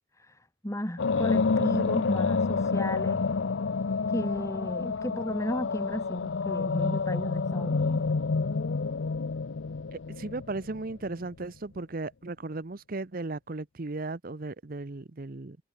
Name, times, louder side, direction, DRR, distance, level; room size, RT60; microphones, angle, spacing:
voice 1, 0.2-3.2 4.1-8.1, equal, 15° left, 2.3 m, -33 dB
sound 1, 1.0-11.1, left 4 dB, 85° left, 0.6 m, -28 dB
voice 2, 9.9-15.6, right 2 dB, 50° right, 0.8 m, -36 dB
head